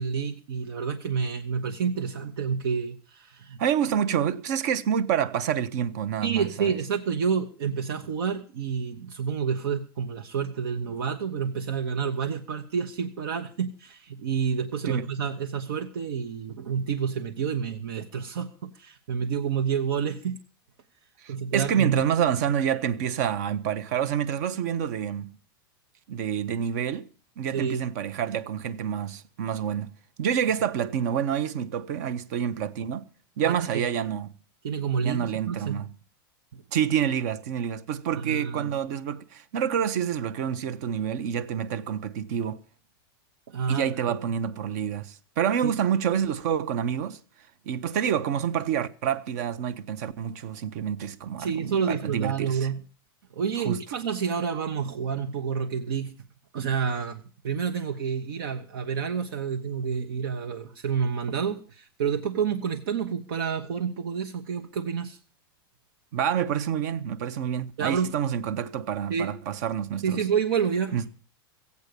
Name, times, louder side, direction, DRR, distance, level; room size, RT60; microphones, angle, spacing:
voice 1, 0.0-3.6 6.2-20.4 21.3-22.0 27.5-27.8 33.4-33.8 34.6-35.8 36.5-36.6 38.2-38.7 43.5-43.9 45.6-45.7 51.4-52.8 53.3-56.1 56.5-65.2 67.8-68.1 69.1-69.3 70.0-71.0, right 6 dB, 70° right, 1.1 m, -29 dB
voice 2, 3.6-6.8 14.8-15.1 21.2-25.3 26.1-27.1 27.4-29.9 30.2-33.0 33.4-34.3 35.0-35.9 36.7-42.6 43.7-47.2 47.7-52.7 53.7-53.8 66.1-70.2 70.9-71.1, right 8 dB, 45° right, 0.8 m, -28 dB
16.0 x 8.3 x 6.7 m
supercardioid pair, 175°, 13 cm